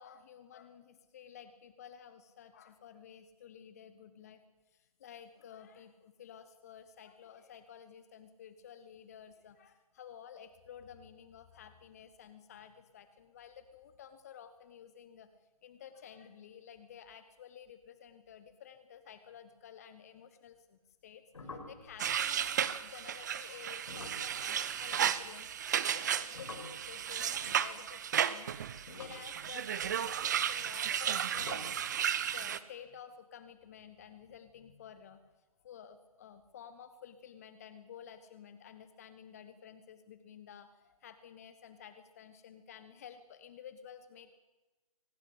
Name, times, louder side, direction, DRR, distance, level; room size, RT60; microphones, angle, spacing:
voice 1, 0.0-4.4 4.7-15.3 15.6-25.5 25.9-28.5 28.8-31.8 32.2-35.2 35.6-44.3, left 8 dB, 25° left, 11 dB, 1.2 m, -53 dB
sound 1, 21.3-25.7 25.9-28.1 28.7-31.1 31.3-31.9, left 2 dB, 55° left, 6.1 m, -50 dB
sound 2, 22.0-32.6, right 9 dB, 30° right, 1.0 m, -34 dB
24.0 x 19.5 x 8.1 m, 1.2 s
figure-of-eight pair, 145°, 19 cm